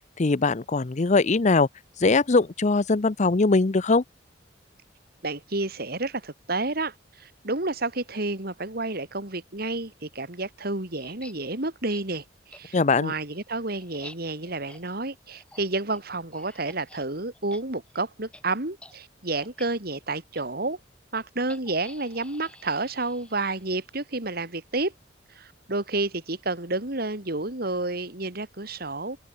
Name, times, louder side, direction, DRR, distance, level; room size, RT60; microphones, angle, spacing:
voice 1, 0.2-1.7 2.0-4.0 12.7-13.1, left 3 dB, 40° left, 0.7 m, -21 dB
voice 2, 5.2-20.8 21.1-24.9 25.3-29.2, right 2 dB, 55° right, 3.1 m, -30 dB
sound 1, 11.0-11.3 11.9-12.0 12.5-12.6 13.0-17.0 17.3-17.6 17.9-18.0 18.3-18.4 18.8-19.0 19.4-19.7 20.3-20.4 21.5-23.8, left 1 dB, 5° left, 4.8 m, -50 dB
open air
head